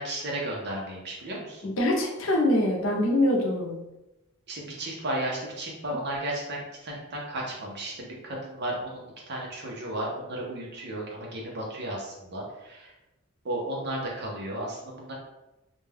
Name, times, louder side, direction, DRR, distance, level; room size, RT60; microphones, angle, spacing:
voice 1, 0.0-1.6 4.5-12.9 13.4-15.1, right 1 dB, 55° right, -3 dB, 0.8 m, -34 dB
voice 2, 1.6-3.8, left 1 dB, 65° left, -1 dB, 0.7 m, -24 dB
2.5 x 2.3 x 3.3 m, 0.95 s
head